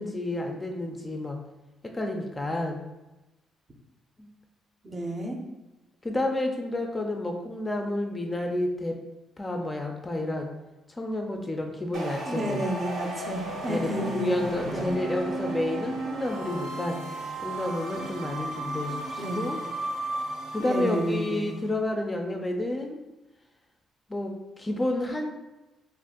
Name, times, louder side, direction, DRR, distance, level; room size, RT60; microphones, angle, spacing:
voice 1, 0.0-1.4 1.8-2.8 4.2-4.3 6.0-9.0 9.4-10.5 10.9-12.7 13.7-17.0 17.4-19.6 20.5-23.0 24.1-25.3, left 1 dB, 20° left, 2 dB, 0.4 m, -30 dB
voice 2, 4.8-5.4 12.3-14.3 14.6-15.0 19.2-19.5 20.6-21.5, equal, 30° right, 1 dB, 0.6 m, -31 dB
sound 1, 11.9-21.6, right 2 dB, 85° right, 0.7 m, -35 dB
2.5 x 2.4 x 3.5 m, 1.0 s
cardioid pair, 90°, 0 cm